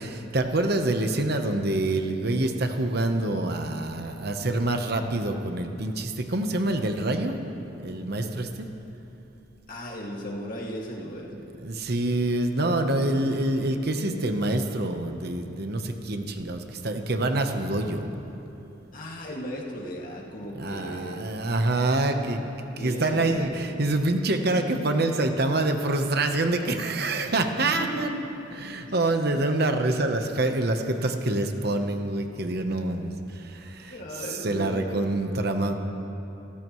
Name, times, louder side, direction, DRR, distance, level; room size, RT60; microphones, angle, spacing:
voice 1, 0.0-7.4 7.8-8.7 11.6-18.1 20.6-22.4 22.8-28.2 28.6-35.7, right 2 dB, 55° right, 5 dB, 1.0 m, -26 dB
voice 2, 9.7-11.3 18.9-21.4 22.8-23.5 27.6-28.2 28.9-29.0 33.9-35.1, equal, 45° left, -2 dB, 2.2 m, -36 dB
28.5 x 14.5 x 3.2 m, 2.9 s
head